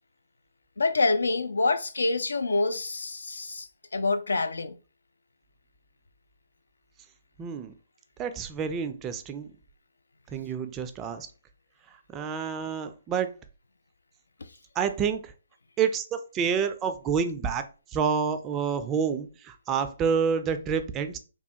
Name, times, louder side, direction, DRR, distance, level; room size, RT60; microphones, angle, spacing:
voice 1, 0.8-4.7 14.4-14.5, left 3 dB, 70° left, 0.3 m, -27 dB
voice 2, 7.4-7.7 8.2-9.5 10.3-11.3 12.1-13.3 14.8-15.3 15.8-21.2, right 6 dB, 20° right, 0.3 m, -28 dB
3.1 x 2.2 x 2.8 m
figure-of-eight pair, 135°, 0 cm